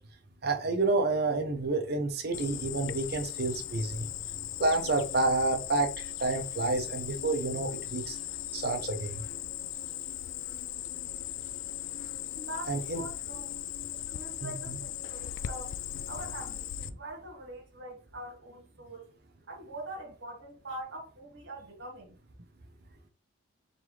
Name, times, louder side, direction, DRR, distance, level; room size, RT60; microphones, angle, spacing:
voice 1, 0.4-4.1 4.6-8.2 8.5-9.2 12.7-13.0 14.4-14.8, right 3 dB, 55° right, 0.8 m, -29 dB
Cricket, 2.3-16.9, left 12 dB, 75° left, 0.3 m, -38 dB
voice 2, 12.3-13.6 13.9-15.7 16.1-19.1 19.5-22.2, right 1 dB, 85° right, 1.4 m, -43 dB
4.0 x 3.4 x 3.2 m
head